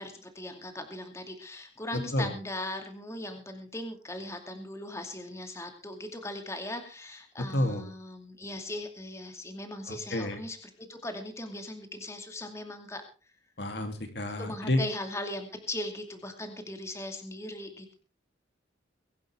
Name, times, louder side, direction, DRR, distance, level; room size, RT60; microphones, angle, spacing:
voice 1, 0.0-13.0 14.4-17.9, left 1 dB, 15° left, 5 dB, 2.4 m, -39 dB
voice 2, 9.9-10.4 13.6-14.8, left 1 dB, 60° left, 7 dB, 2.6 m, -29 dB
23.0 x 11.5 x 3.4 m, 0.34 s
head